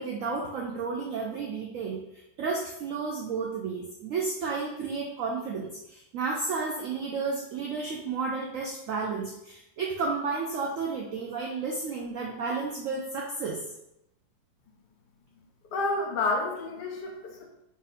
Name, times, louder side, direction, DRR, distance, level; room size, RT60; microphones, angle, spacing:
voice 1, 0.0-13.7, right 4 dB, 70° right, -1 dB, 0.8 m, -32 dB
voice 2, 15.7-17.5, left 2 dB, 75° left, 1 dB, 1.3 m, -29 dB
3.7 x 2.6 x 4.0 m, 0.82 s
omnidirectional pair, 1.8 m